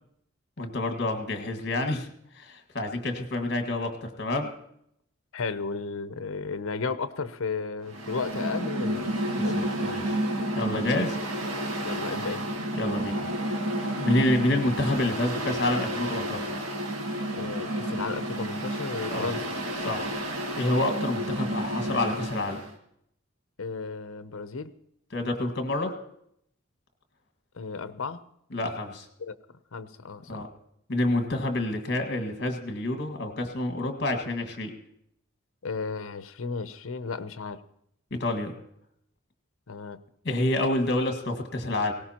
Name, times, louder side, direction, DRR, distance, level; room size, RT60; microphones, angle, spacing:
voice 1, 0.6-2.1 2.4-4.5 9.3-10.2 10.6-11.2 12.7-13.6 14.0-16.5 19.1-19.3 19.8-20.1 20.6-22.6 25.1-25.9 28.5-29.1 30.3-30.5 30.9-34.7 38.1-38.5 40.3-41.9, left 1 dB, 50° left, 6 dB, 1.7 m, -28 dB
voice 2, 5.3-9.1 9.4-10.0 11.8-12.5 17.3-19.4 23.6-24.7 27.5-28.2 29.2-29.3 29.7-30.5 35.6-37.6 39.7-40.0, left 4 dB, 75° left, 13 dB, 0.7 m, -34 dB
Mechanical fan, 7.8-22.7, right 1 dB, 85° right, 1.7 m, -31 dB
19.0 x 17.5 x 2.9 m, 0.74 s
head